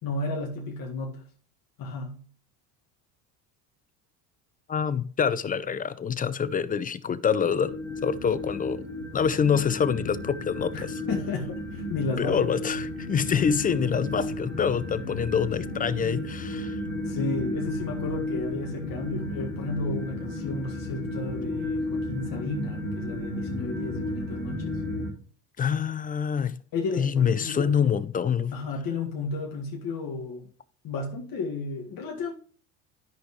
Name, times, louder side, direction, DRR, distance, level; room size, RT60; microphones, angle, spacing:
voice 1, 0.0-1.3 1.8-2.2 10.7-12.7 17.1-24.8 26.7-28.0 28.5-30.5 30.8-32.3, left 3 dB, 45° left, 1.9 m, -33 dB
voice 2, 4.7-7.8 8.0-8.8 9.1-11.0 12.2-16.8 25.6-26.6 27.0-28.5, left 7 dB, 20° left, 0.4 m, -26 dB
sound 1, 7.6-25.1, left 1 dB, 70° left, 2.6 m, -33 dB
13.0 x 5.2 x 3.1 m
hypercardioid pair, 75°, 48 cm